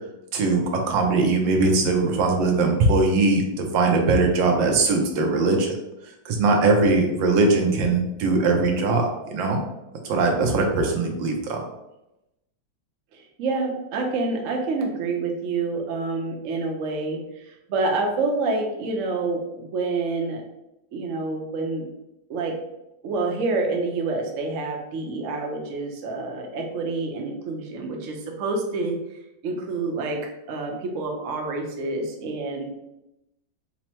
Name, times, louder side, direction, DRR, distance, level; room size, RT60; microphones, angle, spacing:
voice 1, 0.3-5.7 6.2-9.6 10.0-11.6, right 3 dB, 80° right, 2 dB, 1.5 m, -21 dB
voice 2, 13.1-20.4 20.9-21.9 22.3-22.6 23.0-29.2 29.4-30.2 30.5-32.8, right 3 dB, 60° right, 1 dB, 0.8 m, -28 dB
4.3 x 2.1 x 4.3 m, 0.90 s
omnidirectional pair, 2.1 m